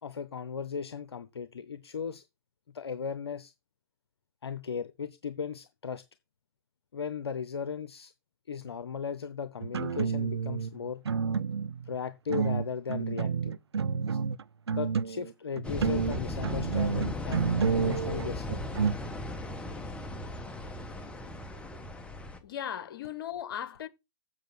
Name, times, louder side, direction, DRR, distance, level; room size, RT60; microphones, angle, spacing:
voice 1, 0.0-2.2 2.7-3.5 4.4-6.0 6.9-8.1 8.5-11.0 11.8-13.6 14.1-14.2 14.7-18.6, left 6 dB, 75° left, 0.8 m, -37 dB
sound 1, 9.6-10.7 11.1-11.9 12.3-15.3 15.6-19.0, right 6 dB, 75° right, 0.5 m, -29 dB
sound 2, 15.6-22.4, left 1 dB, 10° left, 1.4 m, -37 dB
voice 2, 22.4-23.9, left 10 dB, 55° left, 1.3 m, -37 dB
7.7 x 7.0 x 6.3 m
figure-of-eight pair, 105°, 14 cm